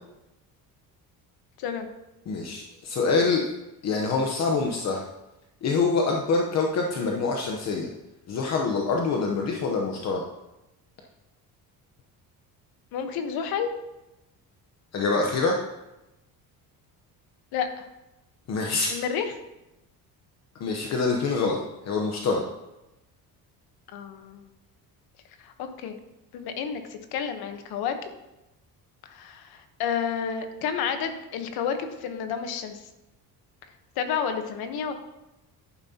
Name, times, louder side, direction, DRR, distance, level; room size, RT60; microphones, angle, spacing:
voice 1, 1.6-1.9 12.9-13.7 17.5-17.9 18.9-19.3 23.9-24.5 25.4-26.0 26.3-27.9 29.0-32.8 34.0-34.9, left 7 dB, 85° left, 7 dB, 1.2 m, -30 dB
voice 2, 2.3-3.5 3.8-5.0 5.6-7.9 8.3-10.2 14.9-15.6 18.5-18.9 20.5-21.6 21.8-22.4, left 4 dB, 45° left, 1 dB, 0.9 m, -25 dB
11.0 x 9.1 x 2.9 m, 0.96 s
cardioid pair, 170°, 36 cm